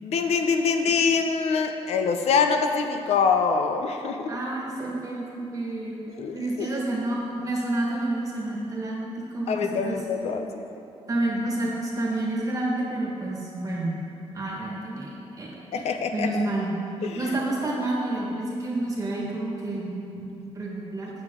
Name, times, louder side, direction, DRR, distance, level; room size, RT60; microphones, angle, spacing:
voice 1, 0.0-4.3 6.1-6.8 9.5-10.7 15.7-16.4 17.0-17.4, left 5 dB, 80° left, 5 dB, 0.5 m, -25 dB
voice 2, 4.3-6.0 6.3-10.0 11.1-14.0 14.3-15.8 16.1-16.7 17.1-21.1, right 2 dB, 30° right, -3 dB, 1.5 m, -29 dB
8.0 x 6.8 x 3.7 m, 2.8 s
wide cardioid pair, 140°, 11 cm